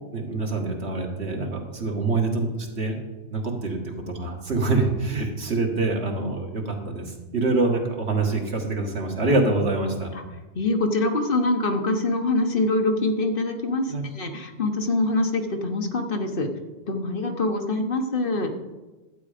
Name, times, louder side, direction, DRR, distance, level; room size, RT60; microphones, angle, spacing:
voice 1, 0.1-2.5 2.8-3.0 3.3-7.1 7.3-10.1 13.9-14.0, right 3 dB, 70° right, 1 dB, 2.0 m, -25 dB
voice 2, 10.5-16.5 16.9-18.5, left 2 dB, 55° left, 5 dB, 1.3 m, -24 dB
12.0 x 8.7 x 5.1 m, 1.2 s
omnidirectional pair, 1.1 m